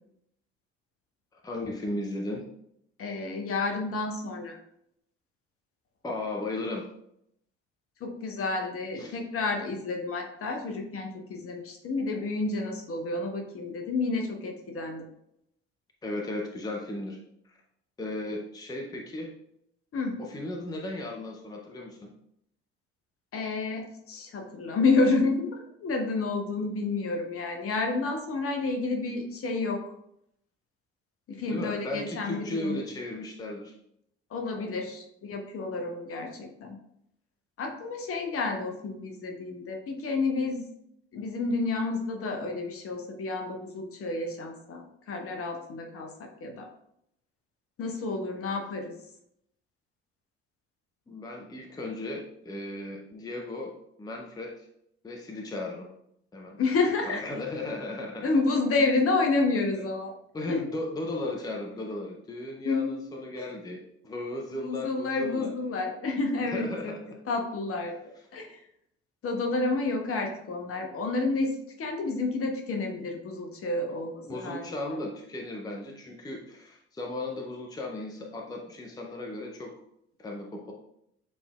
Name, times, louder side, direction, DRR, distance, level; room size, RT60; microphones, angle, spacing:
voice 1, 1.3-2.4 6.0-6.9 9.0-9.2 16.0-17.2 17.4-17.6 18.0-19.3 20.2-22.1 31.5-33.7 51.1-54.7 55.0-55.9 56.3-56.6 57.0-58.3 60.3-65.5 66.5-67.2 74.2-79.7 80.2-80.7, left 2 dB, 10° left, 1 dB, 0.6 m, -36 dB
voice 2, 3.0-4.6 8.0-15.1 19.9-20.2 23.3-29.8 31.3-32.8 34.3-36.8 37.6-40.7 41.1-46.7 47.8-48.9 56.6-57.2 58.2-60.1 60.5-60.6 62.6-63.0 63.3-63.4 64.5-67.0 67.3-68.0 68.3-68.6 69.2-75.0, left 3 dB, 40° left, 3 dB, 1.0 m, -30 dB
6.9 x 3.3 x 2.3 m, 0.76 s
figure-of-eight pair, 50°, 35 cm